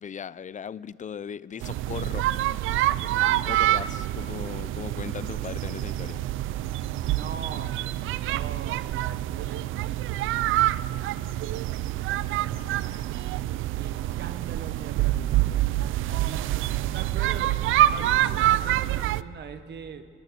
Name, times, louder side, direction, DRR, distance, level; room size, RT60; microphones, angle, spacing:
voice 1, 0.0-2.3 3.3-6.2, left 7 dB, 40° left, 19 dB, 0.6 m, -38 dB
sound 1, 1.6-19.2, right 14 dB, 85° right, 0.5 m, -26 dB
voice 2, 7.1-13.2 13.8-15.8 16.1-16.5 16.9-20.1, right 7 dB, 60° right, 8 dB, 1.2 m, -42 dB
25.0 x 21.0 x 7.0 m, 2.3 s
cardioid pair, 90°, 20 cm